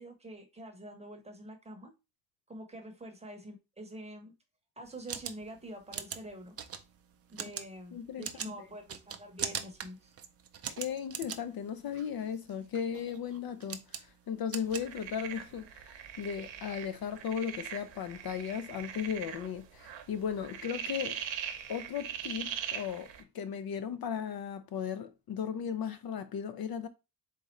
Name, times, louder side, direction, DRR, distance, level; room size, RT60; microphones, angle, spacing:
voice 1, 0.0-1.9 2.5-4.3 4.8-6.5 7.3-10.2, right 1 dB, 15° right, 0.8 m, -46 dB
sound 1, 4.9-15.5, right 8 dB, 35° right, 0.4 m, -42 dB
voice 2, 7.9-8.3 8.6-8.7 10.8-21.2 21.7-26.9, left 8 dB, 55° left, 0.5 m, -36 dB
sound 2, 14.7-23.2, right 9 dB, 85° right, 0.8 m, -41 dB
4.1 x 3.7 x 3.1 m
cardioid pair, 150°, 43 cm